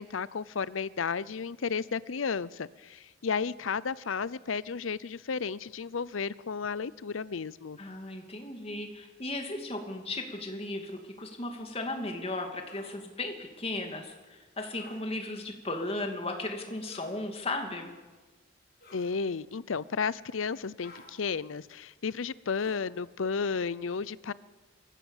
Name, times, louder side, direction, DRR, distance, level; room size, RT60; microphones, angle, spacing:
voice 1, 0.0-7.8 18.9-24.3, left 5 dB, 90° left, 19 dB, 0.6 m, -33 dB
voice 2, 7.8-17.9, left 2 dB, 30° left, 4 dB, 2.6 m, -36 dB
sound 1, 12.7-13.0 14.7-15.0 16.8-17.2 18.8-19.1 20.8-21.1 22.5-22.9, left 2 dB, 55° left, 5.8 m, -52 dB
23.5 x 15.5 x 7.3 m, 1.3 s
head